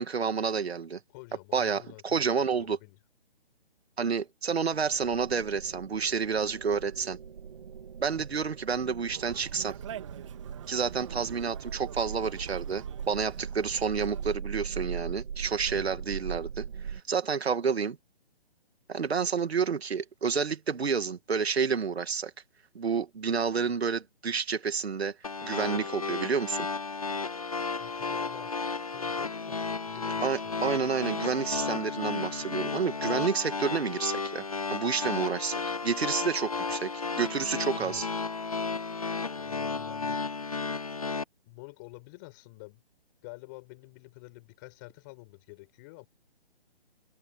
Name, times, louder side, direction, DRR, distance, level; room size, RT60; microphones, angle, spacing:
voice 1, 0.0-1.0 1.5-2.8 4.0-7.2 8.0-9.7 10.7-18.0 18.9-22.3 22.7-25.1 25.4-26.7 30.2-36.9 37.2-38.1, right 6 dB, 75° right, 2.4 m, -29 dB
voice 2, 1.1-3.0 8.2-8.5 15.7-16.3 27.8-30.8 37.8-38.0 39.4-40.8 41.4-42.8 43.2-46.1, left 25 dB, 20° left, 6.4 m, -49 dB
sound 1, 4.7-17.0, right 7 dB, 50° right, 2.5 m, -40 dB
Conversation, 9.1-14.4, right 10 dB, 30° right, 2.7 m, -45 dB
sound 2, 25.2-41.2, left 4 dB, 35° left, 0.4 m, -33 dB
hypercardioid pair, 170°, 32 cm